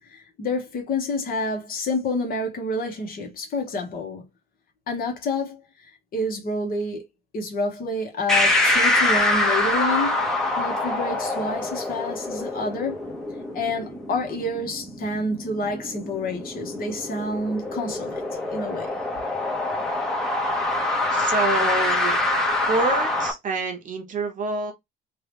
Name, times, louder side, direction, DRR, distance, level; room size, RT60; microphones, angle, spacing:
voice 1, 0.0-4.3 4.9-5.6 5.9-7.1 7.3-10.2 10.6-13.0 13.5-18.2 18.5-19.0, left 2 dB, 45° left, 1.4 m, -28 dB
sound 1, 8.3-23.3, left 2 dB, ahead, 0.9 m, -25 dB
voice 2, 21.1-22.2 22.7-24.7, right 3 dB, 40° right, 0.9 m, -26 dB
3.0 x 2.8 x 3.4 m
cardioid pair, 145°, 20 cm